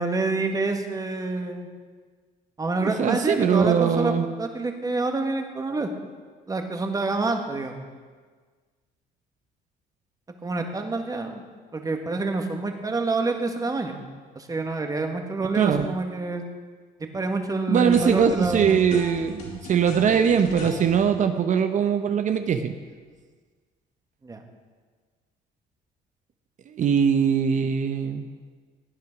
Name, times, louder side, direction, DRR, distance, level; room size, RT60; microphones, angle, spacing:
voice 1, 0.0-1.7 2.6-5.9 6.5-7.8 10.4-11.4 11.7-14.0 14.3-16.5 17.1-18.8 24.2-24.4, right 3 dB, 20° right, 4 dB, 1.7 m, -27 dB
voice 2, 2.8-4.3 15.6-15.9 17.7-22.7 26.7-28.3, right 7 dB, 45° right, 8 dB, 0.9 m, -21 dB
sound 1, 17.9-21.0, left 2 dB, 60° left, 4.5 m, -39 dB
16.0 x 9.5 x 6.0 m, 1.5 s
cardioid pair, 110°, 17 cm